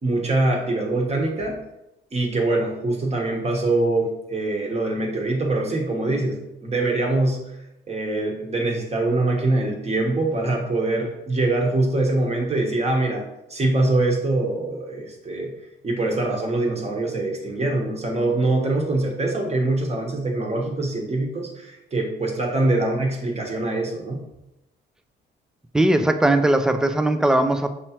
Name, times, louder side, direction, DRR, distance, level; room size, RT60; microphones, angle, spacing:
voice 1, 0.0-1.6 2.1-7.5 7.9-13.2 13.5-15.5 15.8-24.2, right 2 dB, 30° right, 0 dB, 1.1 m, -23 dB
voice 2, 25.7-27.7, right 1 dB, 5° right, 8 dB, 0.3 m, -19 dB
5.7 x 3.1 x 2.9 m, 0.91 s
cardioid pair, 90°, 20 cm